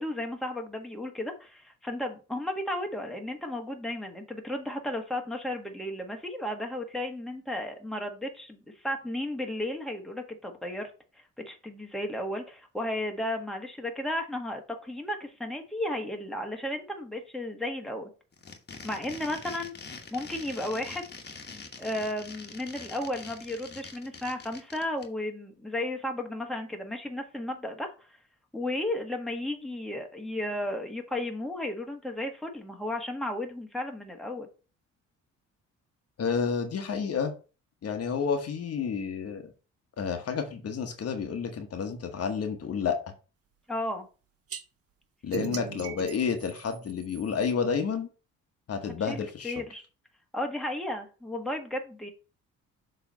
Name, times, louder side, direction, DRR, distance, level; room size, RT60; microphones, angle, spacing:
voice 1, 0.0-8.6 8.8-10.9 11.4-18.1 18.8-19.7 20.1-21.1 21.5-27.9 28.5-34.5 43.7-44.1 49.1-49.8 50.3-52.1, left 1 dB, ahead, 2 dB, 1.5 m, -34 dB
sound 1, 18.3-25.0, left 4 dB, 35° left, 1.4 m, -44 dB
voice 2, 36.2-37.3 37.8-39.5 40.0-43.1 45.2-48.1 48.7-49.6, left 6 dB, 55° left, 6 dB, 1.1 m, -30 dB
sound 2, 44.5-44.6 45.3-47.5, right 8 dB, 50° right, 0.9 m, -39 dB
7.0 x 3.4 x 5.3 m, 0.34 s
cardioid pair, 90°, 30 cm